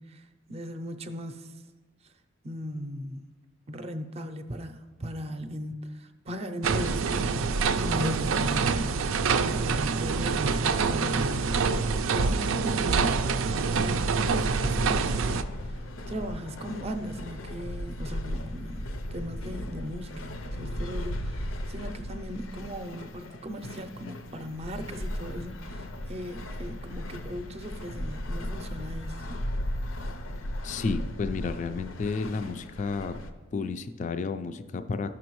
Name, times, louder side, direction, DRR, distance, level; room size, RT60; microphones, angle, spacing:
voice 1, 0.0-1.5 2.4-3.2 3.7-7.4 7.8-9.0 9.4-11.8 12.1-29.4, equal, 30° right, 8 dB, 0.5 m, -38 dB
sound 1, 6.6-15.4, right 4 dB, 85° right, 0.4 m, -26 dB
sound 2, 14.3-33.3, left 1 dB, 80° left, 0.6 m, -36 dB
voice 2, 30.6-33.2 33.5-35.1, left 4 dB, 40° left, 10 dB, 0.3 m, -31 dB
13.5 x 6.1 x 3.0 m, 1.3 s
head